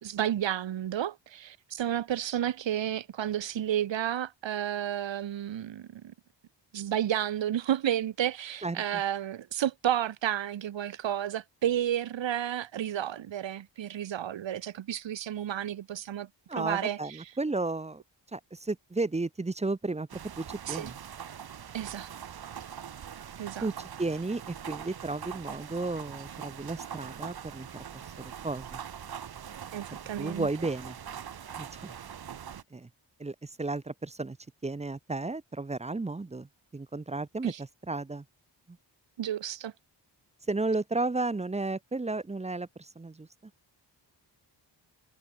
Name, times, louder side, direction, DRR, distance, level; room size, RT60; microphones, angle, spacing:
voice 1, 0.0-6.1 6.7-17.0 20.7-20.9 21.7-22.1 23.4-23.7 29.7-30.5 37.4-37.6 39.2-39.7, right 11 dB, 75° right, 1.0 m, -31 dB
voice 2, 8.6-9.0 16.5-18.0 18.3-20.1 20.4-21.0 23.6-27.7 27.9-28.8 30.2-31.0 31.6-31.9 32.7-32.9 33.2-34.4 34.6-38.2 40.5-43.3, right 3 dB, 15° right, 0.6 m, -33 dB
sound 1, 20.1-32.6, right 8 dB, 55° right, 1.0 m, -43 dB
cardioid pair, 65°, 46 cm